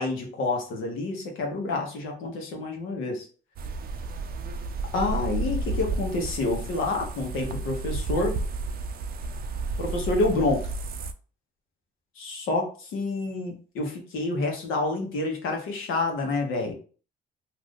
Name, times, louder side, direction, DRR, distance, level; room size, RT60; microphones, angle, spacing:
voice 1, 0.0-3.3 4.9-8.4 9.8-10.6 12.2-16.7, left 2 dB, 85° left, 2 dB, 1.0 m, -28 dB
sound 1, 3.6-11.1, right 3 dB, 50° right, 0.4 m, -32 dB
2.5 x 2.4 x 3.6 m, 0.38 s
cardioid pair, 90°, 20 cm